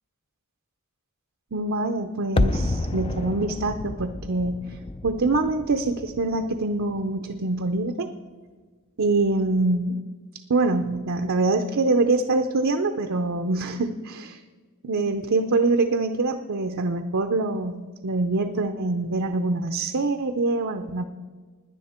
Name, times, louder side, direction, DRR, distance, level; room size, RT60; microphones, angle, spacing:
voice 1, 1.5-4.6 5.0-8.1 9.0-10.0 10.5-14.4 14.8-21.1, right 3 dB, 65° right, 6 dB, 0.6 m, -24 dB
sound 1, 2.4-7.3 7.6-7.7, left 2 dB, 25° left, 0.4 m, -29 dB
17.0 x 10.0 x 4.4 m, 1.4 s
head